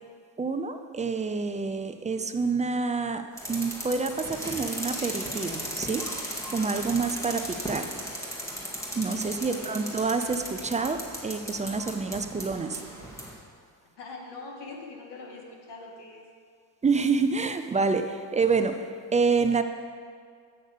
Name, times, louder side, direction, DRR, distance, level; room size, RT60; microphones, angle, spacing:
voice 1, 0.4-6.1 6.5-7.9 9.0-12.8 16.8-19.6, right 4 dB, 15° right, 8 dB, 0.5 m, -27 dB
sound 1, 3.4-13.4, equal, 5° left, 1.9 m, -36 dB
voice 2, 9.2-9.7 14.0-16.3, left 3 dB, 60° left, 1 dB, 1.9 m, -43 dB
8.1 x 6.3 x 6.7 m, 2.1 s
supercardioid pair, 90°, 47 cm